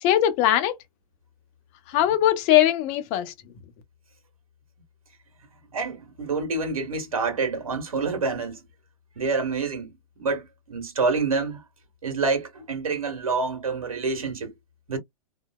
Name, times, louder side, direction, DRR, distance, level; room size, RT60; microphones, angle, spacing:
voice 1, 0.0-0.7 1.9-3.3, left 12 dB, 40° left, 0.8 m, -20 dB
voice 2, 5.7-8.6 9.1-9.9 10.2-11.6 12.0-14.5 14.9-15.0, right 4 dB, 75° right, 1.6 m, -27 dB
3.0 x 2.6 x 2.2 m
hypercardioid pair, 115°, 18 cm